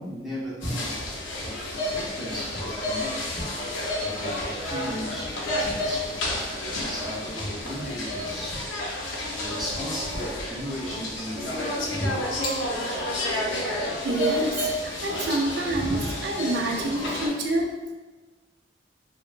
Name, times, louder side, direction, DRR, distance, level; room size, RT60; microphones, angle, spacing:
voice 1, 0.0-3.6 4.0-6.2 6.9-8.6 9.3-12.5 15.7-16.1, equal, ahead, -9 dB, 0.7 m, -35 dB
sound 1, 0.6-17.3, left 1 dB, 80° left, 0.5 m, -31 dB
voice 2, 14.0-17.9, right 2 dB, 60° right, 1 dB, 0.4 m, -27 dB
3.1 x 2.0 x 2.4 m, 1.2 s
head